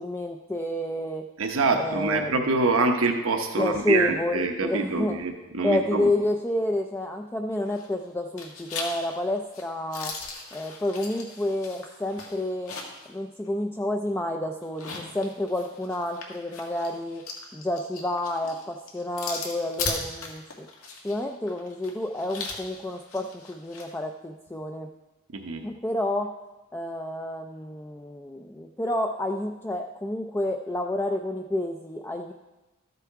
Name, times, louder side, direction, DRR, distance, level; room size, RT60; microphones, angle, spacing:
voice 1, 0.0-1.3 1.8-2.3 3.6-5.2 5.6-10.2 10.5-12.8 13.1-17.2 17.5-20.7 21.0-24.9 25.6-26.3 26.7-32.3, left 1 dB, 10° left, 3 dB, 0.3 m, -29 dB
voice 2, 1.4-6.1 25.3-25.7, right 3 dB, 75° right, 3 dB, 0.9 m, -25 dB
sound 1, 7.6-8.1 8.4-13.1 13.4-13.5 14.6-23.9, left 4 dB, 85° left, 1.8 m, -38 dB
13.5 x 6.9 x 4.7 m, 1.1 s
head